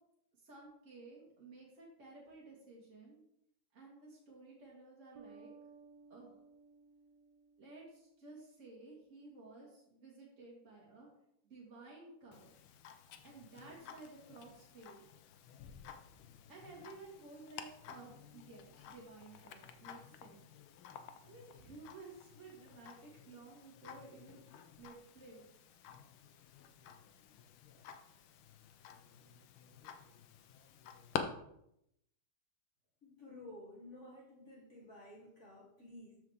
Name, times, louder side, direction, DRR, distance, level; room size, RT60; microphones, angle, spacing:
voice 1, 0.3-3.2 3.7-5.5 6.1-6.4 7.6-11.1 11.4-12.5 13.2-15.0 16.5-20.5 21.2-25.4, right 3 dB, 35° right, -4 dB, 2.0 m, -55 dB
sound 1, 5.2-8.5, right 4 dB, 60° right, 1.3 m, -59 dB
Tick-tock, 12.3-31.2, left 9 dB, 80° left, 1.5 m, -50 dB
voice 2, 33.0-36.2, left 1 dB, 35° left, -5 dB, 2.0 m, -53 dB
13.5 x 4.8 x 3.5 m, 0.77 s
omnidirectional pair, 2.3 m